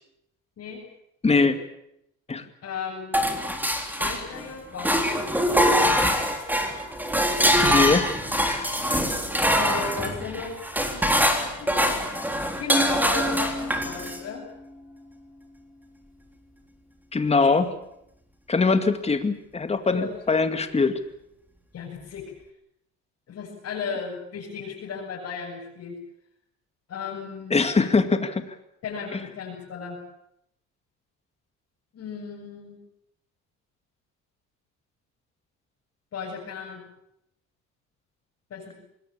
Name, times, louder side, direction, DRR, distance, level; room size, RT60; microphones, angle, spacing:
voice 1, 1.2-1.6 2.3-2.4 7.6-8.7 17.1-17.7 18.5-21.0 27.5-28.5 29.1-29.2, left 4 dB, 20° left, 8 dB, 2.3 m, -22 dB
voice 2, 2.6-3.4 3.9-5.5 9.5-10.6 10.9-12.0 12.5-14.4 19.9-20.1 21.7-22.3 23.3-26.0 26.9-27.6 28.8-30.0 31.9-32.8 36.1-36.8 38.5-38.7, left 5 dB, 50° left, -3 dB, 6.9 m, -36 dB
sound 1, 3.1-4.5 4.8-14.2, equal, 5° right, 3.6 m, -23 dB
26.0 x 21.0 x 8.7 m, 0.78 s
cardioid pair, 130°, 32 cm